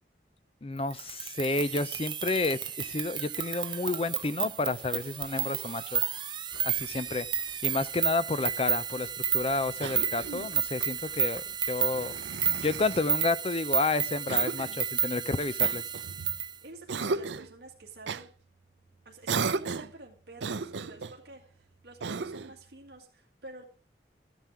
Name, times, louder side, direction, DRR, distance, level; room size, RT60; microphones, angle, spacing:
voice 1, 0.6-6.0 6.6-7.3 7.6-12.1 12.6-15.8, left 3 dB, 30° left, 0.5 m, -30 dB
sound 1, 0.9-16.5, right 8 dB, 25° right, 0.6 m, -32 dB
sound 2, 6.5-12.8, left 1 dB, 85° left, 3.4 m, -57 dB
Cough, 9.8-10.6 11.9-13.1 14.3-14.8 15.6-16.4 16.9-17.5 18.0-18.3 19.3-20.0 20.4-21.2 22.0-22.6, right 4 dB, 90° right, 0.6 m, -35 dB
voice 2, 16.6-18.3 19.1-21.4 21.8-23.6, right 2 dB, 65° right, 1.9 m, -49 dB
13.5 x 9.2 x 4.8 m
head